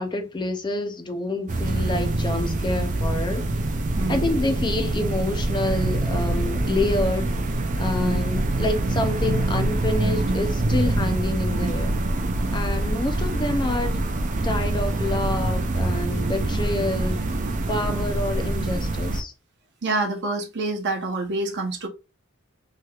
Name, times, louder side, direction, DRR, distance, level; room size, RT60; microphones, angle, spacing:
voice 1, 0.0-3.5 4.1-7.3 7.8-12.0 12.5-14.0 14.4-17.2 17.7-19.3, left 2 dB, 20° left, 0.4 m, -27 dB
sound 1, 1.5-19.2, right 2 dB, 35° right, 0.4 m, -25 dB
voice 2, 4.0-4.3 8.0-8.2 19.8-21.9, right 2 dB, 55° right, 0.8 m, -27 dB
3.2 x 2.9 x 2.3 m
head